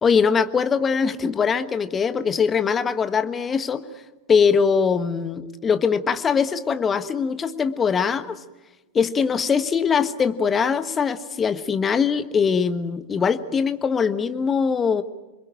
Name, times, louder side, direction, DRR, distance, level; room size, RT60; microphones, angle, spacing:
voice 1, 0.0-3.8 4.3-8.4 8.9-15.0, left 6 dB, 20° left, 12 dB, 1.3 m, -22 dB
29.0 x 22.0 x 8.8 m, 1.1 s
figure-of-eight pair, 90°, 0 cm